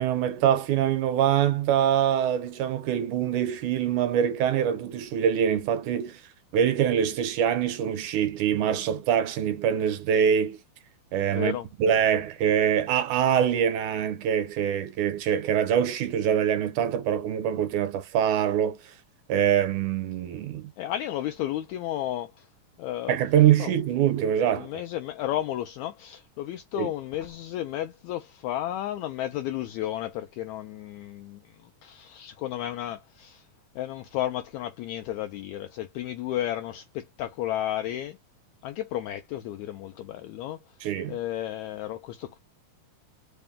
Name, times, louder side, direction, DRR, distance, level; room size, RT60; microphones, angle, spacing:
voice 1, 0.0-6.2 6.5-10.6 11.1-18.8 19.3-20.7 23.1-24.7 26.8-26.9 40.8-41.1, right 9 dB, 75° right, 2.1 m, -24 dB
voice 2, 11.3-11.7 20.8-22.5 22.8-23.2 23.6-23.7 24.5-33.4 33.7-38.2 38.6-40.6 41.1-42.4, left 12 dB, 80° left, 1.7 m, -33 dB
5.1 x 2.2 x 3.5 m
omnidirectional pair, 3.7 m